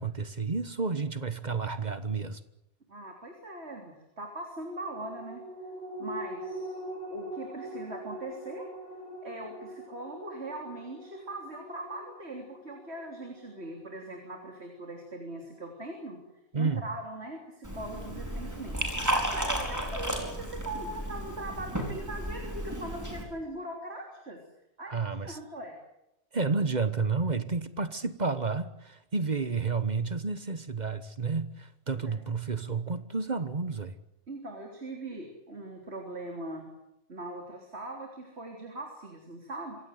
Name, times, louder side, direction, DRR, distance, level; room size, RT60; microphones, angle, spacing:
voice 1, 0.0-2.4 16.5-16.8 24.9-25.4 26.3-34.0, right 4 dB, 40° right, 1.3 m, -31 dB
voice 2, 2.9-5.4 6.0-6.8 7.1-8.7 9.2-16.2 16.5-24.4 24.8-25.8 31.9-32.2 34.3-36.7 37.1-39.8, right 2 dB, 70° right, 3.8 m, -40 dB
sound 1, 4.6-15.4 15.8-15.9, equal, 70° left, 7.0 m, -43 dB
Liquid, 17.6-23.2, right 1 dB, 15° right, 4.9 m, -33 dB
26.0 x 16.5 x 9.3 m
omnidirectional pair, 1.1 m